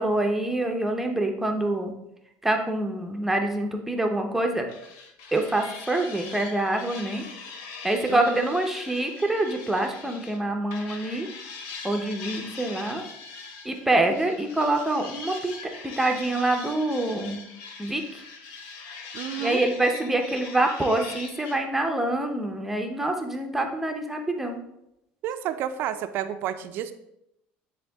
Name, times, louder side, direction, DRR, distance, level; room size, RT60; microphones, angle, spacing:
voice 1, 0.0-1.9 2.4-4.7 5.3-7.2 7.8-11.3 11.8-13.0 13.6-15.5 15.8-17.5 17.8-18.2 19.4-24.6, right 2 dB, 5° right, 3 dB, 0.7 m, -26 dB
sound 1, 4.7-10.4 10.7-21.6, left 4 dB, 75° left, 1.1 m, -41 dB
voice 2, 19.1-19.6 25.2-26.9, right 10 dB, 60° right, 10 dB, 0.5 m, -30 dB
10.0 x 3.5 x 3.5 m, 0.82 s
cardioid pair, 130°, 4 cm